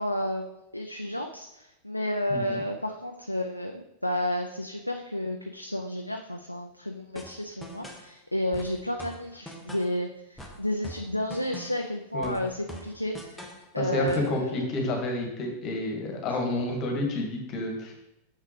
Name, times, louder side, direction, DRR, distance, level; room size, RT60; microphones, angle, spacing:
voice 1, 0.0-13.5 13.7-14.6, left 1 dB, 85° left, 3 dB, 0.4 m, -31 dB
voice 2, 2.3-2.6 12.1-12.4 13.8-17.9, left 2 dB, 35° left, 2 dB, 1.6 m, -30 dB
sound 1, 7.2-8.1 8.5-10.0 10.4-11.9 12.2-13.7 14.1-14.4, equal, 5° left, 1.1 m, -43 dB
6.7 x 5.9 x 3.2 m, 0.86 s
figure-of-eight pair, 90°, 0 cm